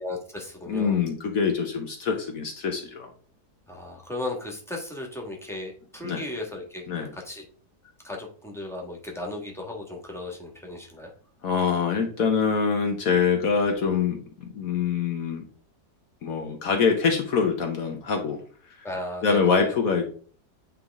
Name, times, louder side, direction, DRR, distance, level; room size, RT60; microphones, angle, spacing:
voice 1, 0.0-1.0 3.7-6.9 7.1-7.4 8.0-11.1 18.8-19.7, left 2 dB, ahead, 0 dB, 1.6 m, -35 dB
voice 2, 0.7-3.1 6.0-6.2 6.9-7.1 11.4-15.4 16.2-18.4 19.2-20.0, left 5 dB, 65° left, 4 dB, 1.3 m, -24 dB
8.9 x 3.7 x 3.6 m, 0.43 s
omnidirectional pair, 1.7 m